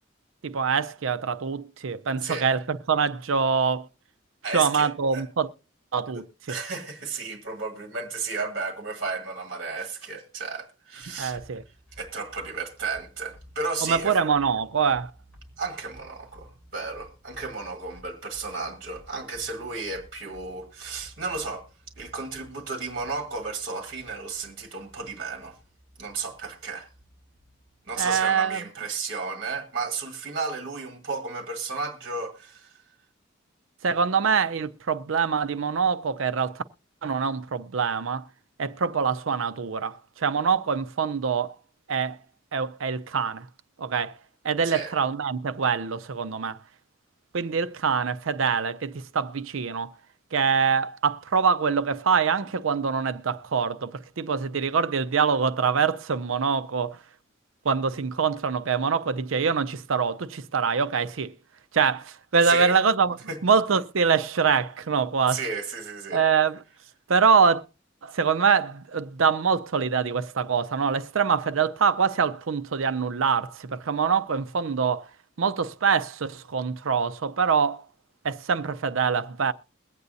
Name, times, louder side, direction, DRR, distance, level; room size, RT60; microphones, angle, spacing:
voice 1, 0.4-3.9 4.5-5.5 5.9-6.6 11.2-11.6 13.8-15.1 28.0-28.6 33.8-36.6 37.0-38.3 38.6-41.6 41.9-42.2 42.5-43.5 43.8-44.2 44.4-46.6 47.3-49.9 50.3-57.0 57.6-61.3 61.7-63.2 63.4-65.4 66.1-66.6 67.1-67.6 68.0-75.1 75.4-77.8 78.2-79.5, right 6 dB, 75° right, 0.5 m, -24 dB
voice 2, 4.4-5.2 6.5-11.4 12.0-14.2 15.6-21.7 22.0-25.6 26.0-26.9 27.9-32.8 44.6-44.9 62.4-62.7 63.3-63.4 65.3-66.2, right 4 dB, 45° right, 1.7 m, -33 dB
sound 1, 11.0-28.2, equal, 5° left, 3.5 m, -54 dB
22.0 x 8.2 x 2.7 m
head